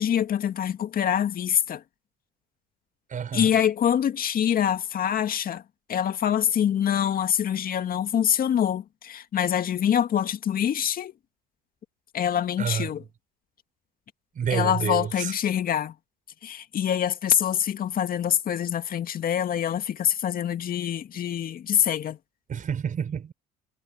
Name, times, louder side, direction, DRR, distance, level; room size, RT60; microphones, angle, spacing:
voice 1, 0.0-1.8 3.3-5.6 5.9-11.1 12.1-13.0 14.5-15.9 16.4-22.2, left 9 dB, 45° left, 2.3 m, -25 dB
voice 2, 3.1-3.5 12.6-12.9 14.3-15.3 22.5-23.3, right 7 dB, 40° right, 5.1 m, -29 dB
hypercardioid pair, 70°, 20 cm